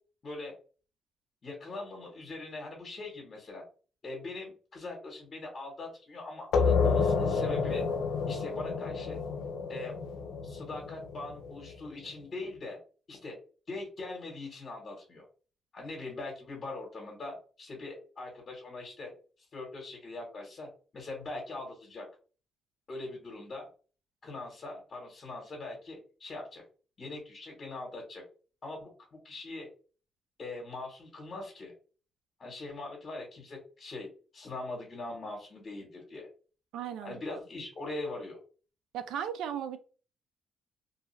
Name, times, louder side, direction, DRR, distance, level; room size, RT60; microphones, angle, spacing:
voice 1, 1.4-3.6 4.0-7.8 8.3-9.2 9.7-9.9 10.4-12.8 13.1-13.4 13.7-15.2 15.7-19.1 19.5-20.7 20.9-22.0 22.9-23.7 24.2-26.6 27.0-28.2 28.6-29.7 30.4-31.7 32.4-34.1 34.3-36.3 37.0-38.4, left 2 dB, 45° left, 1.1 m, -41 dB
sound 1, 6.5-11.9, left 5 dB, 80° left, 0.6 m, -29 dB
voice 2, 36.7-37.4 38.9-39.8, right 9 dB, 85° right, 0.4 m, -36 dB
2.7 x 2.3 x 3.1 m
cardioid pair, 90°, 0 cm